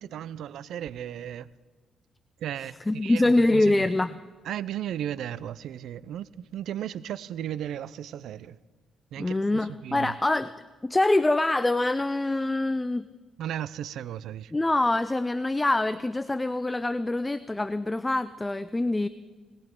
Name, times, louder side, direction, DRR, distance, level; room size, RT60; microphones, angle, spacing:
voice 1, 0.0-1.5 2.4-3.8 4.4-8.6 9.1-10.1 13.4-14.5, right 10 dB, 75° right, 0.5 m, -35 dB
voice 2, 2.9-4.2 9.2-10.5 10.8-13.1 14.5-19.1, left 2 dB, 15° left, 0.4 m, -24 dB
20.0 x 19.0 x 3.8 m
cardioid pair, 90°, 0 cm